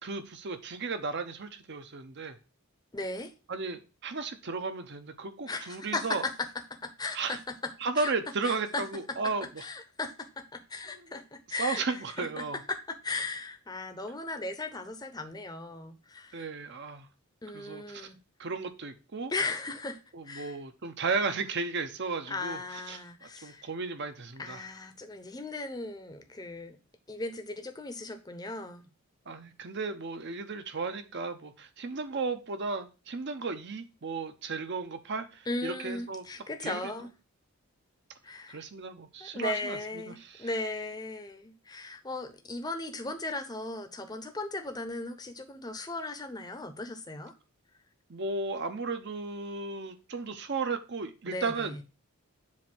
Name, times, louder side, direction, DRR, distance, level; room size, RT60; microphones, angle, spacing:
voice 1, 0.0-2.4 3.5-6.2 7.1-7.4 7.8-9.6 10.9-11.2 11.6-12.6 16.3-17.1 17.5-18.1 18.4-19.3 20.1-22.6 22.9-24.6 29.3-36.2 36.6-36.9 38.5-40.5 48.1-51.8, right 4 dB, 50° right, 0.7 m, -34 dB
voice 2, 2.9-3.3 5.5-7.4 8.0-8.1 8.4-8.8 9.6-16.5 17.4-18.2 19.3-20.0 20.2-20.6 22.3-23.7 24.4-26.8 27.1-28.9 35.5-37.1 38.2-38.6 39.2-47.3 51.3-51.8, left 2 dB, 20° left, 0.7 m, -37 dB
7.4 x 2.7 x 5.9 m
head